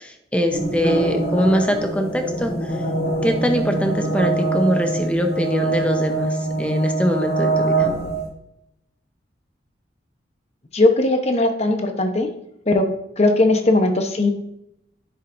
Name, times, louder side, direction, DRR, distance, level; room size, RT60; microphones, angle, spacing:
voice 1, 0.0-2.7 3.2-7.9, equal, 5° left, 4 dB, 0.8 m, -22 dB
sound 1, 0.5-8.2, right 2 dB, 55° left, 2.2 m, -23 dB
voice 2, 10.7-12.3 12.7-12.9 13.2-14.3, left 2 dB, 35° left, 5 dB, 1.0 m, -18 dB
10.0 x 7.4 x 2.7 m, 0.81 s
head